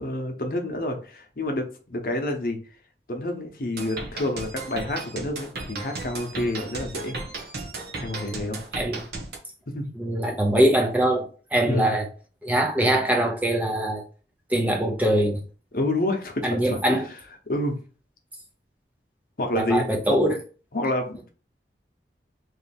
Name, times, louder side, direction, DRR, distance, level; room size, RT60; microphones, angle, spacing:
voice 1, 0.0-2.6 3.1-7.2 8.0-8.6 9.7-9.9 11.6-11.9 15.7-17.0 17.5-17.8 19.4-20.2 20.7-21.3, left 1 dB, 50° left, 3 dB, 0.8 m, -28 dB
sound 1, 3.8-9.4, right 3 dB, 65° right, 0.9 m, -35 dB
voice 2, 10.0-12.1 12.4-14.0 14.5-15.4 16.4-17.1 19.5-20.4, right 1 dB, 10° right, 2 dB, 0.5 m, -23 dB
3.2 x 2.7 x 4.1 m, 0.37 s
head